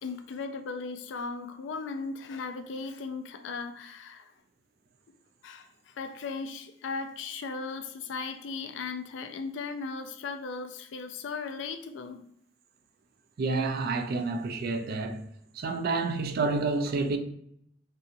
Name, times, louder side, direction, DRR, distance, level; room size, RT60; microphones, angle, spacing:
voice 1, 0.0-4.3 5.4-5.7 6.0-12.2, left 4 dB, 70° left, 0.4 m, -37 dB
voice 2, 13.4-15.2 15.6-17.2, right 3 dB, 55° right, 0.3 m, -29 dB
2.7 x 2.6 x 2.4 m
head